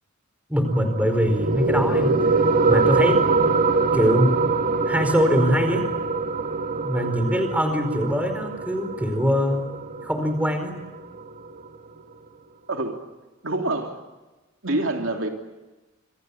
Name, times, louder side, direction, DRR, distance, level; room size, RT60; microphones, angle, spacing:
voice 1, 0.5-2.2 2.7-3.2 3.9-4.4 4.8-5.8 6.8-9.7 10.0-10.7, equal, 5° right, 7 dB, 4.6 m, -22 dB
sound 1, 0.7-11.7, right 3 dB, 45° right, 1.8 m, -24 dB
voice 2, 12.7-13.0 13.4-14.0 14.6-15.3, right 2 dB, 65° right, 3 dB, 3.1 m, -26 dB
27.5 x 26.0 x 7.2 m, 1.1 s
head